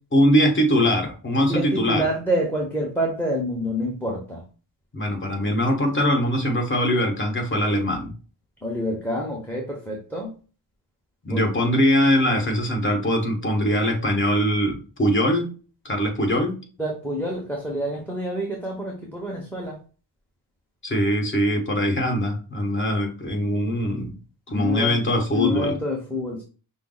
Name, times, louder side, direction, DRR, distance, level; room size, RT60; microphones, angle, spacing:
voice 1, 0.1-2.1 4.9-8.1 11.2-15.5 15.8-16.6 20.8-24.1 24.5-25.8, equal, 25° left, 2 dB, 1.5 m, -22 dB
voice 2, 1.3-4.4 8.6-10.4 11.3-11.7 16.8-19.8 24.5-25.0 25.3-26.4, equal, 5° left, -1 dB, 1.0 m, -27 dB
5.8 x 2.0 x 3.9 m, 0.36 s
cardioid pair, 120°, 45 cm